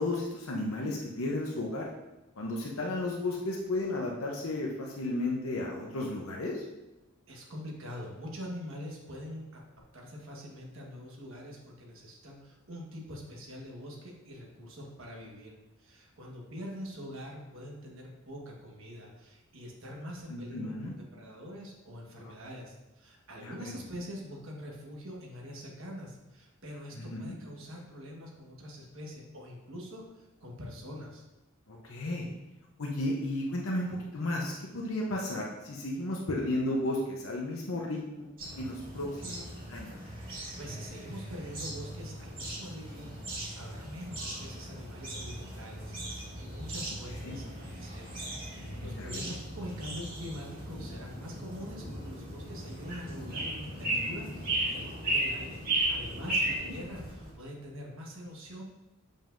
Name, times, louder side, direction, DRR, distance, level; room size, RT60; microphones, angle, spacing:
voice 1, 0.0-1.9 2.4-6.6 20.3-20.9 22.2-22.3 23.4-23.8 26.9-27.4 31.7-32.3 32.8-38.3 38.6-40.0 47.3-47.4 49.0-49.3 56.6-56.7, left 1 dB, 70° left, -1 dB, 0.8 m, -34 dB
voice 2, 7.3-9.6 9.9-31.2 40.2-43.3 43.5-48.1 48.4-55.6 55.9-58.6, equal, 65° right, -1 dB, 1.4 m, -44 dB
sound 1, 38.4-57.3, right 1 dB, 40° right, 2.1 m, -36 dB
7.4 x 5.3 x 2.6 m, 1.0 s
head